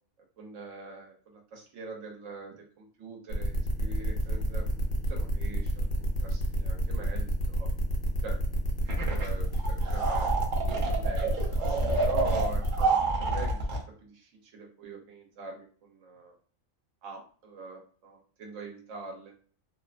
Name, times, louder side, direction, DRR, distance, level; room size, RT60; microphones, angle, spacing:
voice 1, 0.4-7.7 8.2-8.4 9.1-11.3 12.0-13.6 13.9-16.3 17.0-19.3, right 3 dB, 75° right, 1 dB, 1.1 m, -43 dB
sound 1, 3.3-12.8, equal, 65° left, 0.9 m, -29 dB
sound 2, 8.9-9.3 9.5-13.8, right 3 dB, 55° right, 0.6 m, -29 dB
2.7 x 2.1 x 2.4 m, 0.43 s
omnidirectional pair, 1.3 m